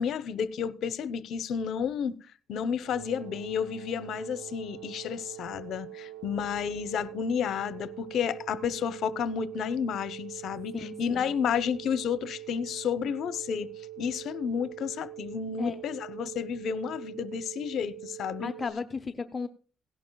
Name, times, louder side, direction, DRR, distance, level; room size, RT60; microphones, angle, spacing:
voice 1, 0.0-2.1 2.5-13.7 14.0-18.5, left 7 dB, 75° left, 0.8 m, -31 dB
sound 1, 2.8-18.7, right 13 dB, 85° right, 3.7 m, -44 dB
voice 2, 10.7-11.4 15.6-15.7 18.4-19.5, left 4 dB, 35° left, 0.7 m, -35 dB
17.0 x 11.0 x 2.3 m
cardioid pair, 90°, 0 cm